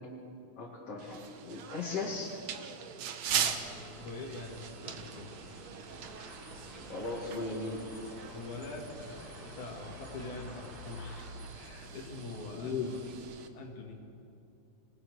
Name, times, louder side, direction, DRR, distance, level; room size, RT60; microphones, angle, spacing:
voice 1, 0.6-2.3 6.9-7.8 12.5-12.9, left 4 dB, 55° left, -4 dB, 3.0 m, -37 dB
sound 1, 1.0-13.5, right 8 dB, 65° right, 2.3 m, -41 dB
sound 2, 3.2-13.2, left 1 dB, 25° right, 5.3 m, -49 dB
voice 2, 3.3-5.3 8.2-11.3 11.5-13.0 13.5-14.0, left 2 dB, 80° left, -1 dB, 3.8 m, -44 dB
28.0 x 19.0 x 6.4 m, 2.8 s
omnidirectional pair, 3.4 m